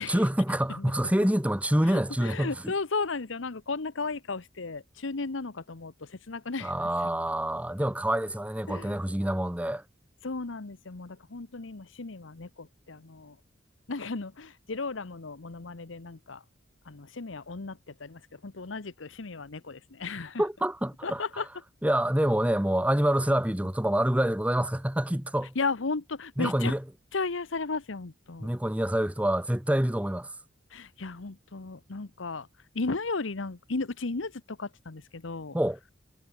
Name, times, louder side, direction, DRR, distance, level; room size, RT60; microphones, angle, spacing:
voice 1, 0.1-2.7 6.6-9.8 20.4-21.2 21.8-25.5 26.4-26.8 28.4-30.3 35.5-35.8, right 1 dB, 5° right, 0.9 m, -26 dB
voice 2, 0.7-1.1 1.9-6.7 7.0-7.1 8.7-9.0 10.2-13.4 13.9-16.4 16.9-20.4 21.0-21.5 25.5-26.7 27.1-28.6 30.7-32.5 32.7-35.6, left 3 dB, 90° left, 1.1 m, -35 dB
head